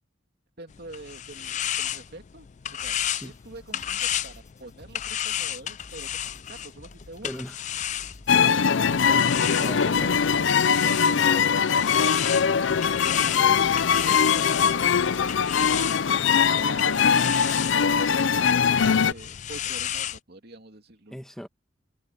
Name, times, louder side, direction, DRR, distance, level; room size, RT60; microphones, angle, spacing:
voice 1, 0.6-6.1 6.5-7.5 9.9-11.5 12.3-13.7 14.0-15.9 16.5-17.4 17.9-21.2, right 2 dB, 60° right, 2.7 m, -45 dB
sound 1, 0.7-8.5 9.1-20.2, left 11 dB, 40° left, 0.4 m, -33 dB
sound 2, 2.8-10.7, equal, 20° left, 6.4 m, -52 dB
voice 2, 7.2-7.6 9.0-10.1 21.1-21.5, equal, ahead, 1.5 m, -38 dB
sound 3, 8.3-19.1, left 6 dB, 85° left, 0.5 m, -21 dB
head